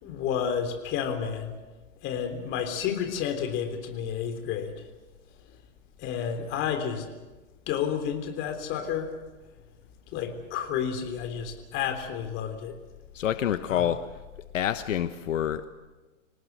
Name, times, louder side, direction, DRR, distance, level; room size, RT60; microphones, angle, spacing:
voice 1, 0.0-1.6 2.0-4.7 6.0-7.1 7.7-9.1 10.1-12.7 13.7-13.9, left 8 dB, 30° left, 6 dB, 3.5 m, -30 dB
voice 2, 13.1-14.0 14.5-15.7, left 10 dB, 75° left, 10 dB, 1.2 m, -27 dB
25.5 x 18.5 x 8.1 m, 1.2 s
hypercardioid pair, 140°, 39 cm